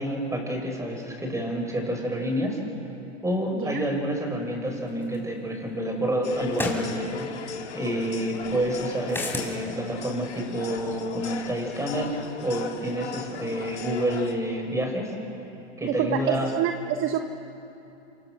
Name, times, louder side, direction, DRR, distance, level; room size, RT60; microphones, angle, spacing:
voice 1, 0.0-2.6 3.2-12.1 12.4-15.1 15.8-16.5, equal, 10° right, 2 dB, 6.1 m, -28 dB
sound 1, 5.1-5.2 6.5-6.9 9.1-9.5, left 2 dB, 5° left, 4.6 m, -29 dB
sound 2, 6.2-14.3, left 6 dB, 90° left, 2.3 m, -38 dB
voice 2, 15.8-17.2, right 9 dB, 40° right, 7 dB, 1.3 m, -27 dB
27.0 x 24.5 x 6.6 m, 2.9 s
hypercardioid pair, 105°, 33 cm